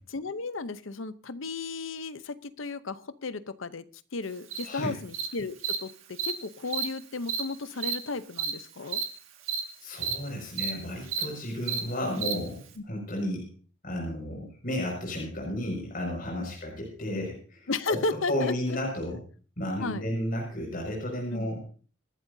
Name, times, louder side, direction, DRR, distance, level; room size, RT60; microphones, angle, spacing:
voice 1, 0.1-3.9 4.1-9.0 16.4-16.5 17.7-18.8 19.8-20.1 21.3-21.5, left 3 dB, 80° left, 14 dB, 0.8 m, -34 dB
Cricket, 4.5-4.6 5.1-5.3 5.6-5.8 6.2-6.3 6.7-6.8 7.3-7.4 7.8-7.9 8.4-8.5 8.9-9.0 9.5-9.6 10.0-10.1 10.6-10.7 11.1-11.2 11.7-11.8 12.2-12.3, right 7 dB, 85° right, 2.0 m, -30 dB
voice 2, 9.8-13.5 13.8-18.0 18.3-19.2 19.6-21.6, left 1 dB, 45° left, -2 dB, 5.9 m, -33 dB
27.0 x 12.0 x 2.7 m, 0.40 s
head